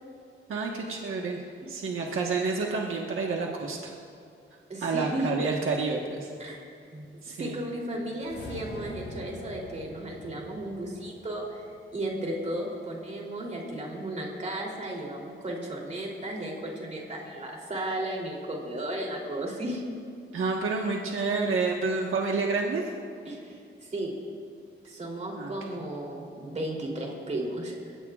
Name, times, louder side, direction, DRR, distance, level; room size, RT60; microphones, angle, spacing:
voice 1, 0.5-1.4 1.7-3.9 4.8-6.3 7.2-7.6 20.3-22.9 25.4-25.5, right 4 dB, 75° right, -1 dB, 1.4 m, -29 dB
voice 2, 4.7-5.5 6.4-6.6 6.9-7.1 7.4-19.8 23.2-24.1 24.9-27.7, right 1 dB, 35° right, -1 dB, 3.1 m, -34 dB
sound 1, 8.1-12.5, left 2 dB, 50° left, 2.5 m, -45 dB
29.0 x 16.5 x 2.4 m, 2.4 s
wide cardioid pair, 160°, 21 cm